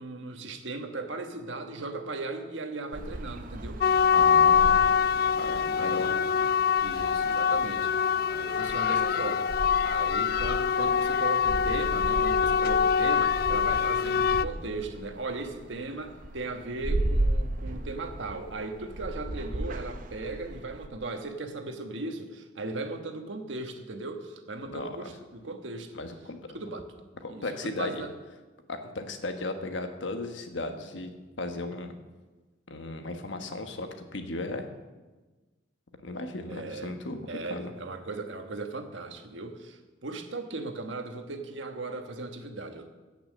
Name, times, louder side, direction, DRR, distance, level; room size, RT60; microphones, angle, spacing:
voice 1, 0.0-3.8 5.8-6.2 6.8-9.5 9.8-26.0 26.5-28.1 36.5-36.9 37.3-42.9, right 3 dB, 80° right, 6 dB, 1.3 m, -37 dB
sound 1, 2.9-20.9, right 1 dB, 45° right, 0.7 m, -36 dB
sound 2, 3.8-14.4, left 7 dB, 50° left, 0.3 m, -24 dB
voice 2, 4.1-4.9 5.4-6.1 24.7-25.0 25.9-26.6 27.2-28.1 28.7-31.1 31.4-31.9 32.7-34.7 36.0-37.7, left 2 dB, 75° left, 6 dB, 1.3 m, -36 dB
15.5 x 5.9 x 7.5 m, 1.2 s
head